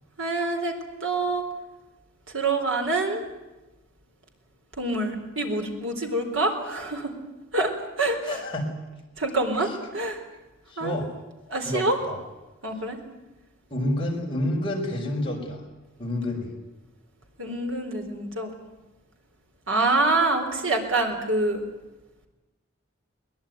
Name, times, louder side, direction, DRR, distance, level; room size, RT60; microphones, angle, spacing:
voice 1, 0.2-0.8 1.0-1.4 2.3-3.2 4.8-7.1 7.5-7.7 8.0-8.2 9.2-10.2 10.8-11.0 11.5-12.0 12.6-13.0 17.4-18.5 19.7-21.6, right 2 dB, 70° right, 4 dB, 4.0 m, -26 dB
voice 2, 8.2-8.7 9.6-9.8 10.7-11.1 11.6-12.2 13.7-15.6 16.0-16.5, left 1 dB, 25° left, -1 dB, 5.2 m, -29 dB
22.0 x 21.0 x 9.4 m, 1.1 s
head